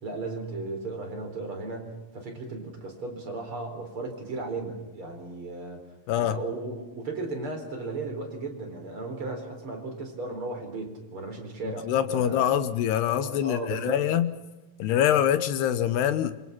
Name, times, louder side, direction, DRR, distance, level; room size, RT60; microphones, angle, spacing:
voice 1, 0.0-5.8 6.1-12.5 13.2-14.0, right 3 dB, 30° right, 4.3 m, -35 dB
voice 2, 6.1-6.4 11.6-14.3 14.8-16.4, left 10 dB, 75° left, 2.7 m, -25 dB
27.0 x 25.5 x 5.9 m
omnidirectional pair, 5.5 m